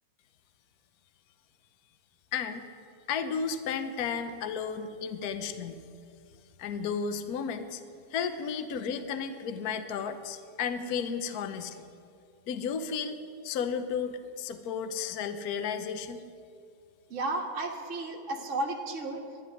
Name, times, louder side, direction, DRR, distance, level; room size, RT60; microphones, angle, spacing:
voice 1, 2.3-2.7 3.1-5.8 6.6-7.8 8.1-11.8 12.5-16.2, left 6 dB, 60° left, 9 dB, 1.2 m, -33 dB
voice 2, 17.1-19.2, right 2 dB, 40° right, 0 dB, 1.7 m, -33 dB
11.5 x 11.5 x 9.8 m, 2.3 s
omnidirectional pair, 2.1 m